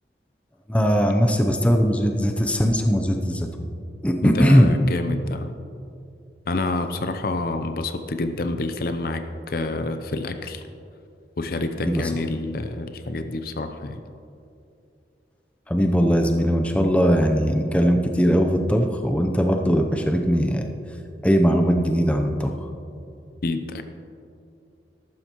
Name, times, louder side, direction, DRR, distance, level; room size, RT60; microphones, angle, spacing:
voice 1, 0.7-3.7 4.0-4.7 11.8-12.0 15.7-20.7 21.2-22.5, equal, 5° left, 3 dB, 0.6 m, -20 dB
voice 2, 4.2-5.5 6.5-10.6 11.4-14.0 23.4-23.8, left 2 dB, 55° left, 8 dB, 0.6 m, -28 dB
14.0 x 12.0 x 3.0 m, 2.5 s
head